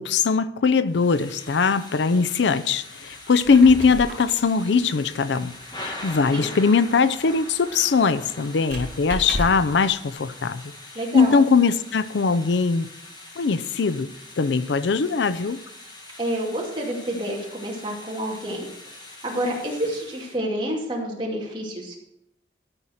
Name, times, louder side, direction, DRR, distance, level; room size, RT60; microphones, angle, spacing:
voice 1, 0.0-10.7 11.1-12.9 13.4-14.1 14.4-15.6, left 5 dB, 85° left, 0.5 m, -21 dB
Thunder / Rain, 0.9-20.4, left 2 dB, 25° left, 1.6 m, -42 dB
Squeak, 3.2-9.8, right 1 dB, 50° right, 3.1 m, -36 dB
voice 2, 10.9-11.3 16.2-18.7 19.2-22.0, right 1 dB, 25° right, 2.6 m, -28 dB
13.0 x 5.7 x 6.4 m
head